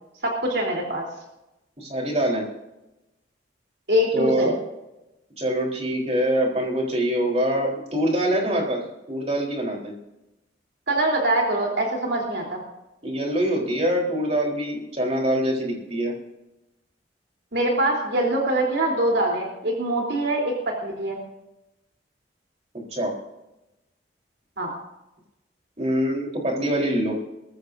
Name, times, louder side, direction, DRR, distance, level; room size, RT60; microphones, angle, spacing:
voice 1, 0.2-1.1 3.9-4.5 10.9-12.6 17.5-21.2 24.6-24.7, right 1 dB, 65° right, -1 dB, 3.6 m, -23 dB
voice 2, 1.8-2.4 4.1-4.5 5.4-8.8 9.1-10.0 13.0-16.1 22.9-23.1 25.8-27.2, right 1 dB, 35° right, 0 dB, 4.0 m, -24 dB
21.5 x 15.0 x 2.7 m, 0.94 s
head